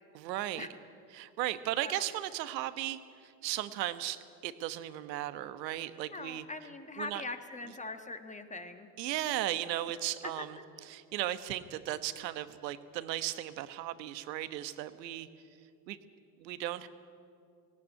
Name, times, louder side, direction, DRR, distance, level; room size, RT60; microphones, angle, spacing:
voice 1, 0.1-0.7 1.1-6.7 7.0-7.2 9.0-15.3 15.9-16.0 16.4-16.9, right 14 dB, 80° right, 13 dB, 1.3 m, -36 dB
voice 2, 6.1-8.9 10.4-10.5, left 3 dB, 15° left, 8 dB, 1.4 m, -42 dB
18.0 x 17.0 x 9.7 m, 2.4 s
supercardioid pair, 105°, 49 cm